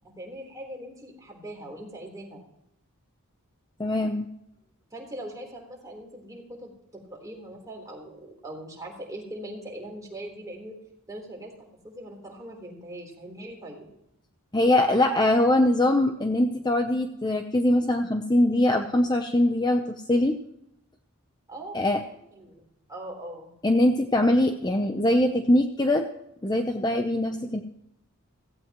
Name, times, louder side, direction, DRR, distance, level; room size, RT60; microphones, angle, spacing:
voice 1, 0.0-2.4 4.9-10.7 11.1-11.5 11.8-13.9 21.5-23.5, right 1 dB, 15° right, -1 dB, 3.9 m, -41 dB
voice 2, 3.8-4.3 14.5-20.4 21.7-22.0 23.6-26.1 26.4-27.6, left 1 dB, 20° left, 5 dB, 0.7 m, -22 dB
16.5 x 16.0 x 3.1 m, 0.79 s
head